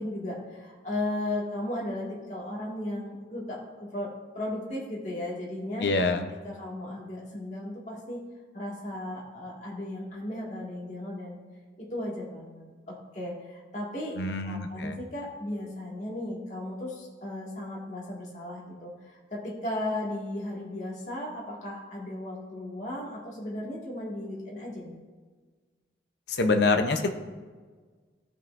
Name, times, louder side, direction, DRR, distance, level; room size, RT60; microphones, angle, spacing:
voice 1, 0.0-3.6 3.9-5.9 6.3-8.2 8.5-11.4 11.8-25.0, left 1 dB, 40° left, -5 dB, 2.0 m, -36 dB
voice 2, 5.8-6.2 14.2-15.0 26.3-27.1, left 3 dB, 75° left, 6 dB, 0.7 m, -25 dB
15.0 x 5.4 x 2.6 m, 1.4 s
head